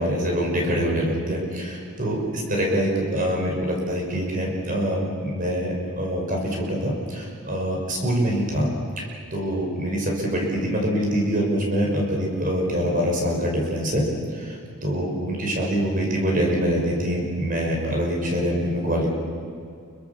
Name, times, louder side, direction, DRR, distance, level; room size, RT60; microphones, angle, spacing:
voice 1, 0.0-8.7 9.0-14.0 14.3-19.1, equal, 40° right, 0 dB, 5.6 m, -25 dB
28.5 x 23.5 x 7.1 m, 2.3 s
head